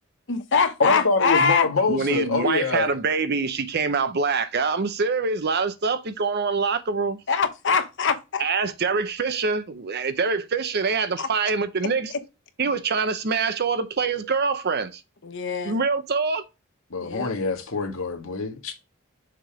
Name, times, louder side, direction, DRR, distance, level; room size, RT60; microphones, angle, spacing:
voice 1, 0.3-1.7 7.3-8.4 11.2-11.3 15.2-15.8 17.0-17.3, left 5 dB, 65° left, 1.0 m, -23 dB
voice 2, 0.8-2.9 16.9-18.7, left 3 dB, 85° left, 1.6 m, -25 dB
voice 3, 1.9-7.2 8.4-12.1 12.6-15.0 15.6-16.4, right 4 dB, 55° right, 0.7 m, -25 dB
6.6 x 3.6 x 4.9 m
head